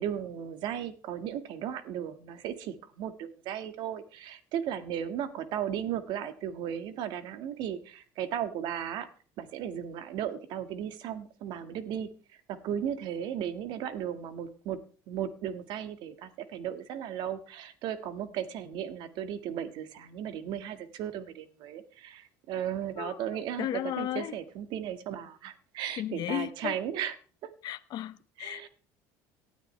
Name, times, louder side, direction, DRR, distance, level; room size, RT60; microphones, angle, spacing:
voice 1, 0.0-9.1 9.4-12.1 12.5-14.8 15.1-23.7 24.0-27.1 27.4-27.5 28.4-28.7, right 9 dB, 70° right, 10 dB, 1.8 m, -36 dB
voice 2, 23.0-24.4 26.0-26.8 27.6-28.7, left 13 dB, 55° left, 12 dB, 0.9 m, -35 dB
18.5 x 12.5 x 3.3 m, 0.39 s
supercardioid pair, 105°, 8 cm